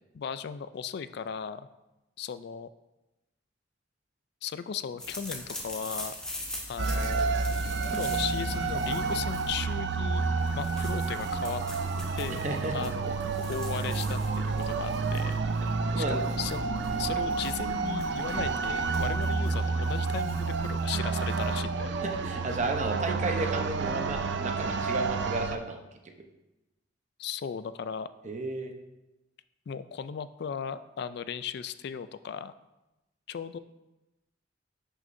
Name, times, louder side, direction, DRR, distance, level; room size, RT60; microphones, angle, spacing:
voice 1, 0.1-1.7 2.2-2.7 4.4-6.1 6.7-7.2 7.9-10.2 10.6-11.6 12.1-12.5 12.7-13.1 13.5-15.4 16.0-16.6 17.0-21.9 27.2-28.1 29.7-32.5 33.3-33.6, left 7 dB, 60° left, 13 dB, 0.3 m, -36 dB
sound 1, 5.0-21.6, left 1 dB, 5° left, 1.3 m, -44 dB
sound 2, 6.8-25.6, right 4 dB, 65° right, 0.5 m, -30 dB
voice 2, 12.4-12.7 13.2-13.3 15.9-16.2 18.3-18.4 22.0-25.8 28.2-28.7, right 2 dB, 40° right, 4 dB, 0.8 m, -33 dB
10.5 x 6.4 x 2.6 m, 0.99 s
head